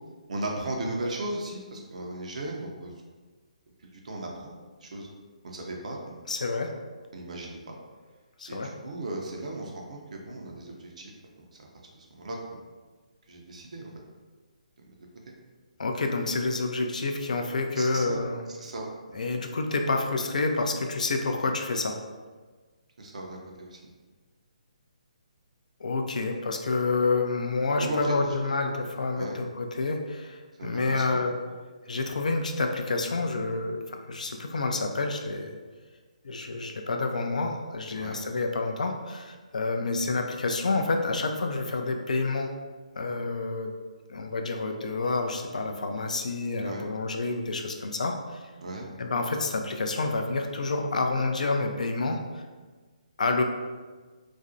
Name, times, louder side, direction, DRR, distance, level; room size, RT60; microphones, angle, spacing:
voice 1, 0.3-2.9 4.0-5.1 5.4-6.3 7.1-7.8 8.5-11.1 11.4-11.7 11.9-12.6 13.3-13.9 14.8-15.0 15.3-15.4 17.8-18.2 18.5-19.2 23.0-23.8 27.8-28.3 29.2-29.4 30.6-31.2 38.0-38.2 46.6-46.8 48.6-48.9, right 2 dB, 65° right, 0 dB, 0.4 m, -36 dB
voice 2, 6.3-6.7 8.4-8.7 15.8-18.4 19.1-22.0 25.8-31.3 31.9-35.5 36.2-42.5 43.0-43.7 44.1-48.5 49.0-52.4 53.2-53.4, left 3 dB, 70° left, 4 dB, 0.3 m, -28 dB
2.4 x 2.0 x 2.5 m, 1.4 s
figure-of-eight pair, 145°, 4 cm